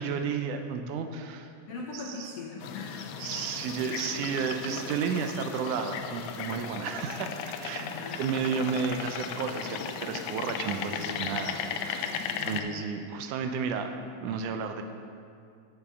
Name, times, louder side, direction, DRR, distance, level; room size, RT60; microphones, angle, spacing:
voice 1, 0.0-1.5 1.9-2.3 3.2-7.9 8.2-11.6 11.8-14.8, right 6 dB, 80° right, 6 dB, 2.1 m, -32 dB
voice 2, 1.7-3.1 7.8-8.2 10.7-11.5 12.2-12.7, left 4 dB, 70° left, -2 dB, 1.6 m, -41 dB
sound 1, 2.6-12.6, left 7 dB, 85° left, 1.5 m, -36 dB
7.5 x 6.0 x 6.8 m, 2.4 s
omnidirectional pair, 3.6 m